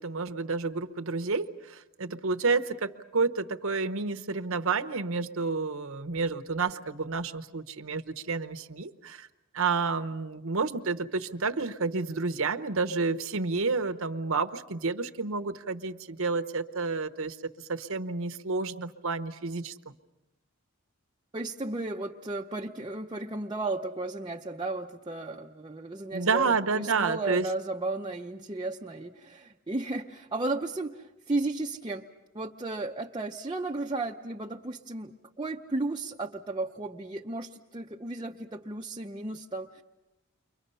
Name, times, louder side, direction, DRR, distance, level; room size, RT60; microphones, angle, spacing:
voice 1, 0.0-9.3 9.5-19.8 26.1-27.5, right 4 dB, 70° right, 8 dB, 1.0 m, -30 dB
voice 2, 21.3-32.1 32.3-39.8, right 2 dB, 20° right, 0 dB, 0.7 m, -34 dB
30.0 x 24.0 x 5.6 m, 1.0 s
head